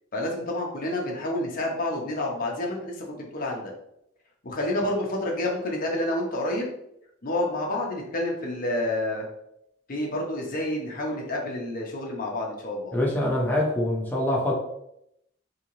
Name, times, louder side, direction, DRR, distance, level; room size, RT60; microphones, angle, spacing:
voice 1, 0.1-3.7 4.4-6.7 7.2-9.2 9.9-12.9, left 1 dB, 45° left, -1 dB, 0.6 m, -29 dB
voice 2, 12.9-14.5, left 1 dB, 10° left, -4 dB, 0.7 m, -24 dB
3.7 x 2.8 x 2.9 m, 0.78 s
head